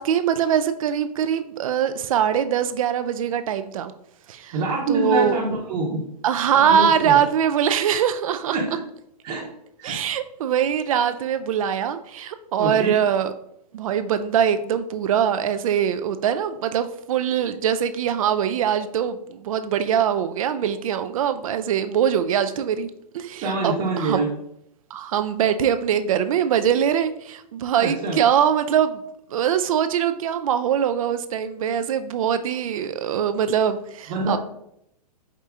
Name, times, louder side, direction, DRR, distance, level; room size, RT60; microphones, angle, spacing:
voice 1, 0.0-3.9 4.3-4.6 4.9-5.4 6.2-8.6 9.8-13.3 13.7-24.2 24.9-29.0 29.3-34.4, right 8 dB, 55° right, 10 dB, 0.4 m, -22 dB
voice 2, 4.5-6.0 6.5-7.2 8.5-8.8 9.2-9.5 9.8-10.0 12.6-13.0 23.4-24.3 27.8-28.2 34.1-34.4, right 2 dB, 30° right, -5 dB, 0.9 m, -25 dB
4.8 x 2.7 x 3.5 m, 0.75 s
hypercardioid pair, 145°, 21 cm